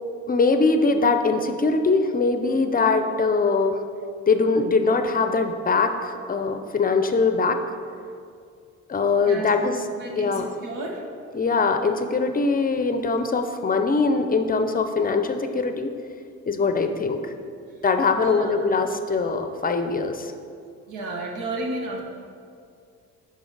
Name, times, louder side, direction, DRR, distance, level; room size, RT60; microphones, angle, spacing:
voice 1, 0.3-3.8 4.3-7.6 8.9-9.8 10.2-10.5 11.3-15.9 16.5-17.2 17.8-20.3, left 4 dB, 30° left, 7 dB, 0.5 m, -22 dB
voice 2, 9.3-11.0 18.1-18.5 20.9-22.0, right 2 dB, 85° right, 1 dB, 1.2 m, -32 dB
11.0 x 4.0 x 3.9 m, 2.3 s
cardioid pair, 90°, 30 cm